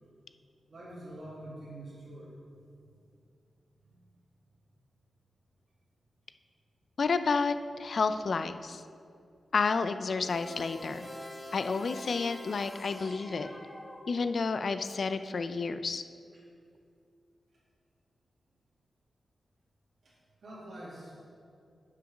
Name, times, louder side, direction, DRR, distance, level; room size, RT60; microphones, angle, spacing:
voice 1, 0.7-2.3 2.9-3.1 3.8-4.0 16.3-16.4 20.0-20.1 20.4-21.2, right 1 dB, 65° right, -7 dB, 1.9 m, -46 dB
voice 2, 7.0-8.8 9.5-11.1 11.5-13.5 14.1-16.0, left 4 dB, 60° left, 10 dB, 0.3 m, -30 dB
sound 1, 10.2-14.6, left 1 dB, 25° left, 1.0 m, -45 dB
7.4 x 5.9 x 4.9 m, 2.4 s
wide cardioid pair, 95°, 0 cm